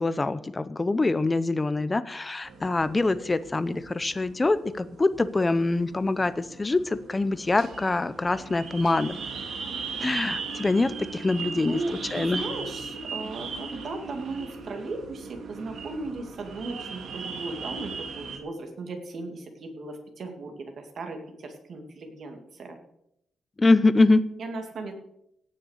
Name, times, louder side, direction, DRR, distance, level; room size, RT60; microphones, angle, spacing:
voice 1, 0.0-9.2 10.0-11.8 12.1-12.4 23.6-24.2, left 2 dB, 15° left, 14 dB, 0.7 m, -24 dB
sound 1, 2.4-18.4, right 5 dB, 70° right, 2.2 m, -39 dB
sound 2, 10.4-17.3, right 2 dB, 10° right, 4.5 m, -44 dB
voice 2, 11.5-22.8 24.4-24.9, right 3 dB, 50° right, 4 dB, 2.4 m, -37 dB
17.0 x 6.6 x 6.5 m, 0.78 s
wide cardioid pair, 165°, 0 cm